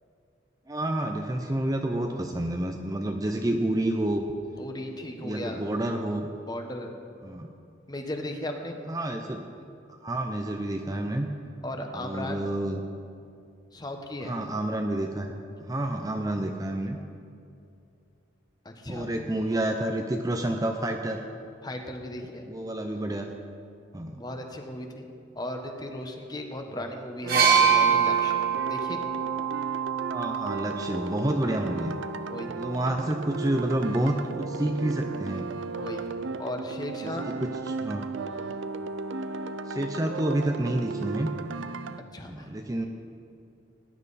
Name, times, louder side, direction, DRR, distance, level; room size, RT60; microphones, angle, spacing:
voice 1, 0.7-4.3 5.2-6.3 7.2-7.5 8.9-9.5 9.9-11.3 12.0-12.8 14.2-15.3 15.6-17.0 18.9-21.2 22.4-23.3 23.9-24.2 30.1-32.0 32.6-35.5 37.0-38.0 39.7-41.3 42.2-42.9, right 1 dB, 20° right, 3 dB, 0.6 m, -29 dB
voice 2, 4.6-5.6 6.5-6.9 7.9-8.8 11.6-12.5 13.7-14.3 18.6-19.1 21.6-22.5 24.2-25.1 25.3-28.4 28.7-29.0 32.3-32.5 35.8-36.0 36.4-37.3 42.1-42.5, left 1 dB, 20° left, 4 dB, 1.1 m, -36 dB
sound 1, 27.2-42.0, right 4 dB, 75° right, 0.5 m, -35 dB
sound 2, 27.3-31.1 32.1-32.3, right 7 dB, 50° right, 1.9 m, -24 dB
18.0 x 10.5 x 4.2 m, 2.5 s
head